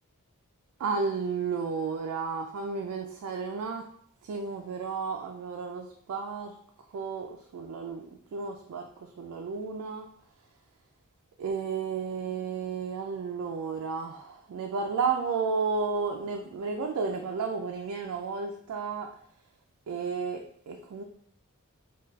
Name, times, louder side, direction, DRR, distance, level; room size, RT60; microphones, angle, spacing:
voice 1, 0.8-3.8 4.2-6.5 6.9-8.9 9.2-10.1 11.4-19.1 19.9-21.0, right 5 dB, 75° right, 3 dB, 0.3 m, -32 dB
3.8 x 2.3 x 2.3 m, 0.64 s
head